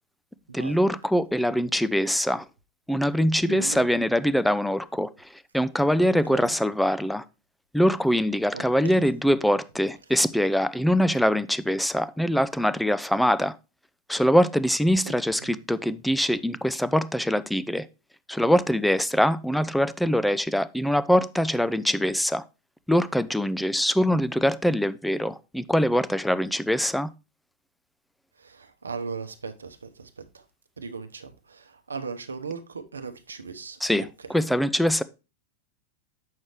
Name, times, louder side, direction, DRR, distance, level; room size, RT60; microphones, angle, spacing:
voice 1, 0.5-2.4 2.9-5.3 5.5-7.2 7.7-13.6 14.1-17.9 18.3-22.4 22.9-27.1 33.8-35.0, equal, ahead, 0.4 m, -23 dB
voice 2, 3.5-3.9 6.0-6.6 8.5-9.0 15.4-15.6 28.4-30.4 30.8-33.8 34.2-34.3, right 5 dB, 75° right, 0.8 m, -38 dB
7.4 x 6.3 x 3.0 m
figure-of-eight pair, 90°, 0 cm